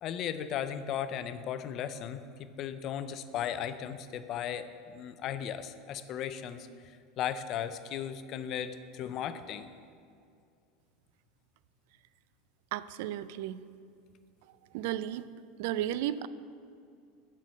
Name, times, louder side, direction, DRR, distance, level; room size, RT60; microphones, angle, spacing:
voice 1, 0.0-9.7, left 9 dB, 45° left, 11 dB, 0.5 m, -36 dB
voice 2, 12.7-13.6 14.7-15.3 15.6-16.3, right 12 dB, 70° right, 16 dB, 0.3 m, -33 dB
7.4 x 5.7 x 6.3 m, 2.4 s
supercardioid pair, 120°, 0 cm